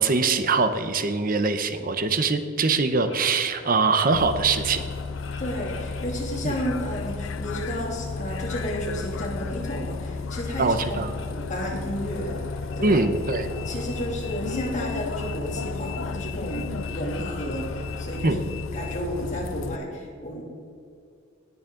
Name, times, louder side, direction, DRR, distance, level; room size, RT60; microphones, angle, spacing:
voice 1, 0.0-4.8 6.4-6.5 10.6-11.1 12.8-13.6 18.2-18.4, right 4 dB, 45° right, 10 dB, 0.8 m, -23 dB
sound 1, 2.7-18.2, left 2 dB, 70° left, 1.2 m, -43 dB
Bus, 4.1-19.8, left 4 dB, 85° left, 0.5 m, -33 dB
voice 2, 5.4-13.1 13.6-18.5 18.7-20.4, equal, 40° left, -2 dB, 2.6 m, -32 dB
19.0 x 7.1 x 3.8 m, 2.5 s
head